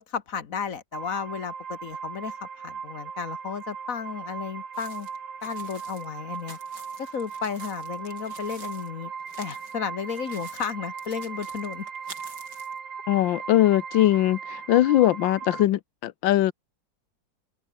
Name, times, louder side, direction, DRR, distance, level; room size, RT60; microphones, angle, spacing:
voice 1, 0.0-5.1 5.4-6.6 7.0-9.1 9.4-11.9, left 6 dB, 50° left, 1.6 m, -33 dB
sound 1, 0.9-15.7, right 6 dB, 85° right, 3.0 m, -38 dB
sound 2, 4.7-8.9 9.2-9.7 10.0-12.8, right 3 dB, 60° right, 5.2 m, -48 dB
voice 2, 13.1-16.5, left 14 dB, 90° left, 1.5 m, -21 dB
omnidirectional pair, 2.0 m